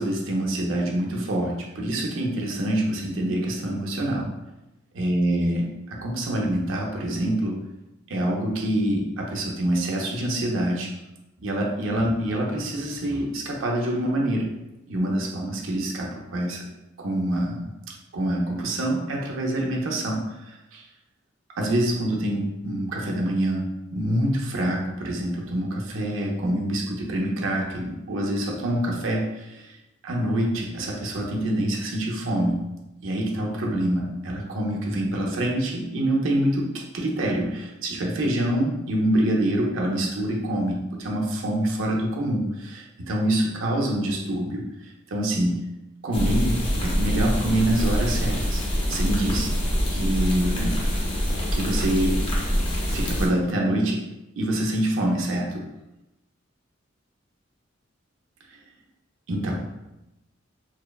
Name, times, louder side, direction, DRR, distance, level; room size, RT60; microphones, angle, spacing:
voice 1, 0.0-4.3 4.9-5.6 5.9-7.6 8.1-10.9 11.4-14.5 14.9-16.6 17.0-20.8 21.6-23.6 23.9-29.8 30.0-32.6 33.0-44.6 45.1-45.6 46.0-49.6 49.9-50.9 51.5-52.2 52.9-54.0 54.4-55.6 58.5-58.6 59.3-59.7, right 1 dB, 85° right, -1 dB, 0.5 m, -26 dB
sound 1, 46.1-53.3, equal, 25° left, 0.4 m, -25 dB
2.9 x 2.0 x 2.2 m, 0.95 s
head